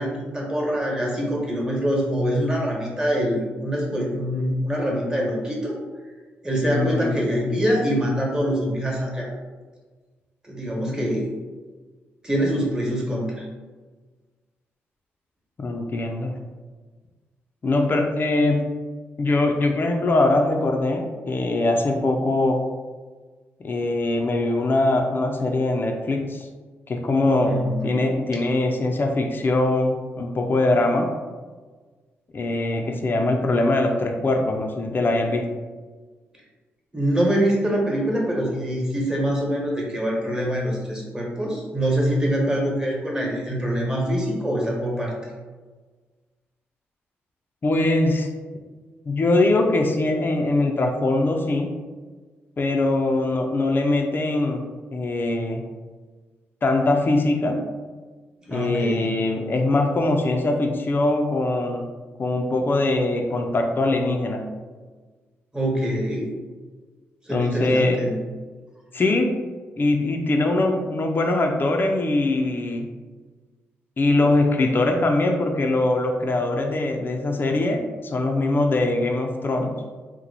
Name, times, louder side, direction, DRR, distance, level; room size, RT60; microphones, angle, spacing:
voice 1, 0.0-5.8 6.4-9.3 10.4-11.3 12.2-13.3 27.4-28.0 36.9-45.1 58.5-59.1 65.5-66.3 67.3-68.2, equal, 15° right, -2 dB, 1.2 m, -24 dB
voice 2, 6.7-7.2 15.6-16.3 17.6-18.7 19.2-22.6 23.6-26.5 26.9-31.1 32.3-35.5 47.6-48.3 49.1-51.8 52.6-54.6 54.9-55.6 56.6-57.6 58.5-61.9 62.2-64.5 67.3-68.0 68.9-69.4 69.8-72.9 74.0-79.7, left 2 dB, 40° left, 3 dB, 0.5 m, -22 dB
2.9 x 2.2 x 3.9 m, 1.4 s
supercardioid pair, 55°, 5 cm